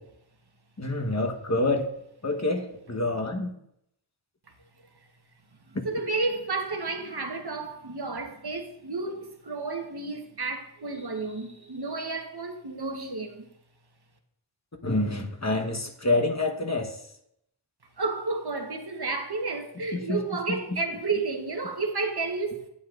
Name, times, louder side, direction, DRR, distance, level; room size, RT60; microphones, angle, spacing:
voice 1, 0.8-1.9 2.2-3.5 14.8-16.9 19.9-20.2, left 2 dB, 35° left, 1.1 m, -27 dB
voice 2, 5.7-13.5 18.0-22.7, right 3 dB, 50° right, 1.2 m, -31 dB
11.0 x 8.9 x 2.5 m
wide cardioid pair, 45°, 49 cm